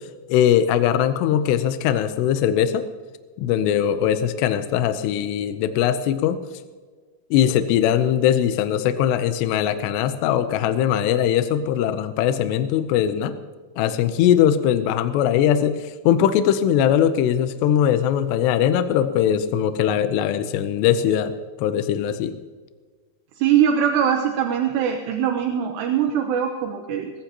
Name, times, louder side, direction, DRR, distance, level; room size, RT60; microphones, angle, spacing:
voice 1, 0.3-2.8 3.4-6.4 7.3-13.4 13.8-21.3 21.6-22.4, left 10 dB, 85° left, 10 dB, 2.4 m, -20 dB
voice 2, 23.4-27.1, right 9 dB, 75° right, 4 dB, 2.6 m, -22 dB
20.5 x 18.0 x 2.9 m, 1.5 s
omnidirectional pair, 5.9 m